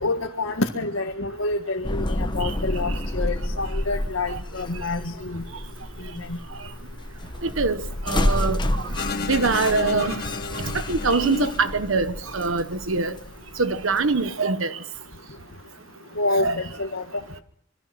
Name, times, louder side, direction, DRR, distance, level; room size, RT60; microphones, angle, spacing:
voice 1, 0.0-5.4 16.2-16.5 16.8-17.0, left 2 dB, 85° left, 1.9 m, -27 dB
sound 1, 1.8-14.3, left 1 dB, 25° left, 1.1 m, -30 dB
voice 2, 7.4-7.8 8.1-8.6 9.3-10.2 10.7-13.1 13.6-14.8 16.3-16.5, right 4 dB, 80° right, 1.2 m, -23 dB
sound 2, 9.0-12.3, left 4 dB, 50° left, 1.1 m, -32 dB
26.5 x 24.0 x 6.0 m
head